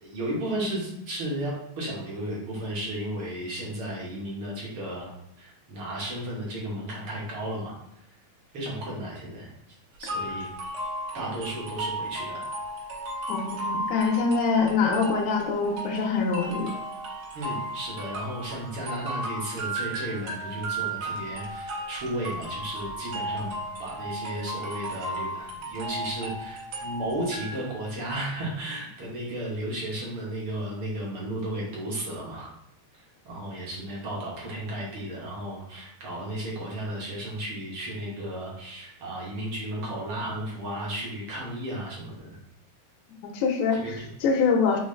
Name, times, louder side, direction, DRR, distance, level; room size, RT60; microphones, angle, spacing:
voice 1, 0.0-5.1 5.4-7.8 8.5-9.5 10.0-10.5 11.1-12.5 17.3-23.5 23.8-32.5 32.9-42.4 43.8-44.1, right 1 dB, 55° right, -4 dB, 1.7 m, -34 dB
sound 1, 10.1-28.0, right 1 dB, 80° right, 2.3 m, -35 dB
voice 2, 13.3-16.7 43.2-44.8, left 4 dB, 80° left, 0 dB, 1.9 m, -24 dB
5.4 x 3.0 x 3.2 m, 0.79 s
omnidirectional pair, 3.4 m